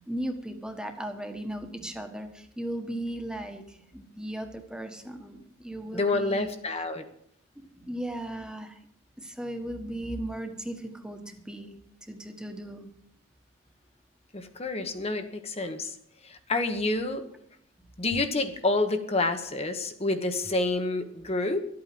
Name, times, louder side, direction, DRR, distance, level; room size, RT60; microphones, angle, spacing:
voice 1, 0.0-6.5 7.5-8.8 9.2-11.7 12.1-12.9 18.0-18.1, right 1 dB, 5° right, 5 dB, 1.5 m, -37 dB
voice 2, 5.9-7.0 14.3-16.0 16.2-17.2 18.0-21.6, left 2 dB, 30° left, 7 dB, 1.2 m, -28 dB
13.0 x 8.8 x 7.8 m, 0.71 s
head